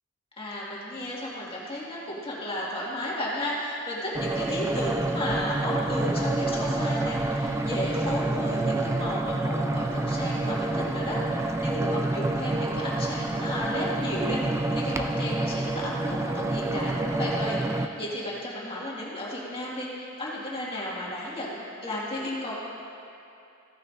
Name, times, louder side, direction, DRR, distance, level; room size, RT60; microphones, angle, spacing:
voice 1, 0.4-22.5, left 1 dB, 25° left, -6 dB, 1.9 m, -33 dB
sound 1, 4.1-17.9, right 2 dB, 15° right, 0.3 m, -28 dB
15.5 x 8.9 x 2.6 m, 2.6 s
head